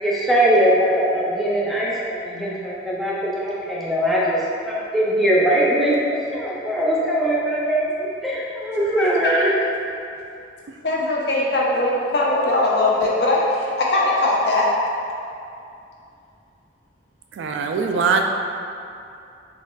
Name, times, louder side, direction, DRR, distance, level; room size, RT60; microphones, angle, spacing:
voice 1, 0.0-6.1 6.3-9.5, right 1 dB, ahead, -7 dB, 0.5 m, -21 dB
voice 2, 8.8-9.5 10.8-14.7, left 2 dB, 60° left, -4 dB, 0.6 m, -20 dB
voice 3, 17.4-18.2, right 5 dB, 80° right, 4 dB, 0.3 m, -21 dB
5.8 x 2.4 x 2.2 m, 2.6 s
head